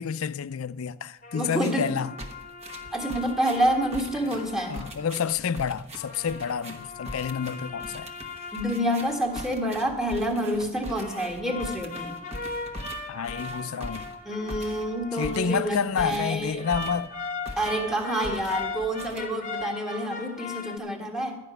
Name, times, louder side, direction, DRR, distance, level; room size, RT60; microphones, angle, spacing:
voice 1, 0.0-2.1 4.7-8.1 13.1-14.1 15.1-17.1, left 7 dB, 80° left, 0.4 m, -29 dB
sound 1, 1.2-5.4 5.9-10.3 10.9-15.9 16.6-20.8, left 3 dB, 35° left, 0.9 m, -39 dB
voice 2, 1.3-1.9 2.9-4.8 8.5-12.1 14.2-16.7 17.6-21.3, equal, ahead, 1.6 m, -28 dB
sound 2, 1.5-1.9 2.2-17.2 17.5-17.9 18.2-19.6, equal, 30° right, 1.2 m, -42 dB
12.0 x 5.9 x 9.1 m
head